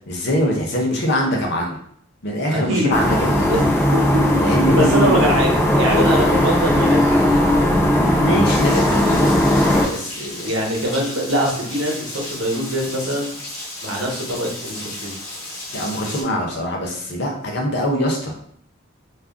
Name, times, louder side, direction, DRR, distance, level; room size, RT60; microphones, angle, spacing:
voice 1, 0.1-1.8 2.2-3.3 4.4-5.3 5.9-6.2 8.2-10.5 15.7-18.3, equal, 50° left, 0 dB, 0.6 m, -23 dB
voice 2, 2.5-3.6 3.9-7.4 8.8-9.2 10.4-13.3 13.8-15.2, equal, 60° right, -2 dB, 0.8 m, -23 dB
sound 1, 2.9-9.9, left 1 dB, 10° left, 0.3 m, -17 dB
Rain, 8.4-16.2, left 1 dB, 75° left, 0.9 m, -34 dB
2.4 x 2.0 x 3.6 m, 0.63 s
head